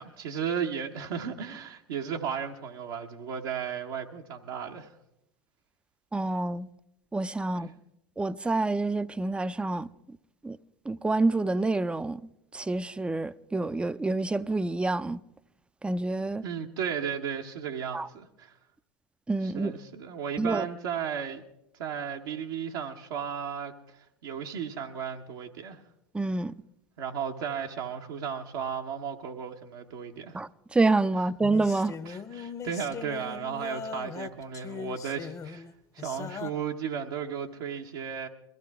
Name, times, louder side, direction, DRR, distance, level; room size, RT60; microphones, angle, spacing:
voice 1, 0.0-4.9 7.5-7.7 16.4-18.5 19.4-21.4 21.8-25.8 27.0-30.4 31.8-35.6 35.9-38.3, right 7 dB, 70° right, 1.0 m, -35 dB
voice 2, 6.1-6.7 7.1-7.7 8.2-9.9 10.4-10.6 10.9-12.2 12.5-15.2 15.8-16.4 17.9-18.1 19.3-19.7 20.4-20.6 26.1-26.5 30.3-31.9, right 2 dB, 10° right, 0.4 m, -27 dB
sound 1, 31.4-36.5, left 6 dB, 25° left, 0.8 m, -40 dB
22.0 x 14.5 x 3.5 m
hypercardioid pair, 80°, 12 cm